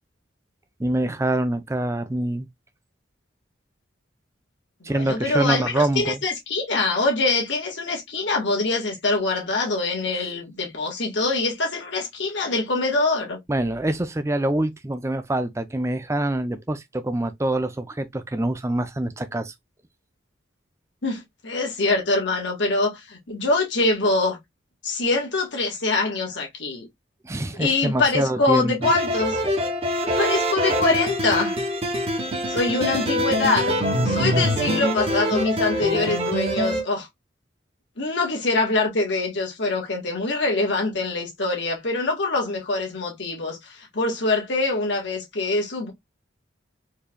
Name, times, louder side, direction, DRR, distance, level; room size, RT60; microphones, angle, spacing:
voice 1, 0.8-2.5 4.8-6.2 13.5-19.5 27.2-28.7, right 1 dB, 15° right, 0.4 m, -25 dB
voice 2, 4.8-13.4 21.0-24.4 24.8-26.9 27.6-29.4 30.0-31.5 32.5-33.8 34.0-37.1 38.0-45.9, left 3 dB, 65° left, 1.7 m, -24 dB
sound 1, 28.8-36.8, equal, 30° right, 0.9 m, -24 dB
4.6 x 3.1 x 2.3 m
head